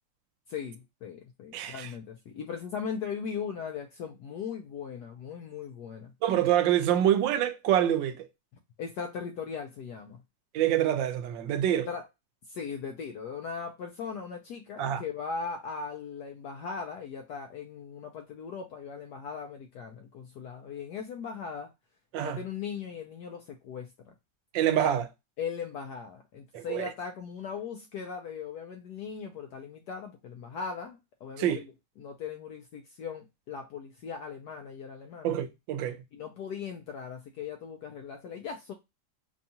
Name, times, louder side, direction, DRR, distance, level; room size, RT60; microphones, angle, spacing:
voice 1, 0.5-6.1 8.8-10.2 11.9-12.0 12.5-21.7 22.2-24.1 25.4-31.6 32.0-35.4 36.1-38.7, left 6 dB, 70° left, 1.1 m, -39 dB
voice 2, 1.5-1.9 6.2-8.3 10.5-11.9 14.8-15.0 22.1-22.4 24.5-25.1 26.5-26.9 31.4-31.6 35.2-36.0, right 11 dB, 80° right, 1.3 m, -26 dB
5.3 x 2.4 x 2.7 m
omnidirectional pair, 2.0 m